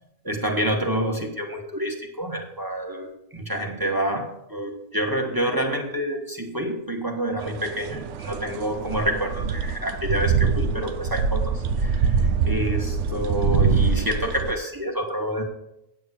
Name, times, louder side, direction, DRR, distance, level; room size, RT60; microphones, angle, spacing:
voice 1, 0.2-15.4, right 1 dB, 15° right, 2 dB, 1.5 m, -28 dB
sound 1, 7.4-14.5, right 5 dB, 65° right, 0.9 m, -24 dB
8.6 x 7.9 x 6.1 m, 0.83 s
omnidirectional pair, 1.4 m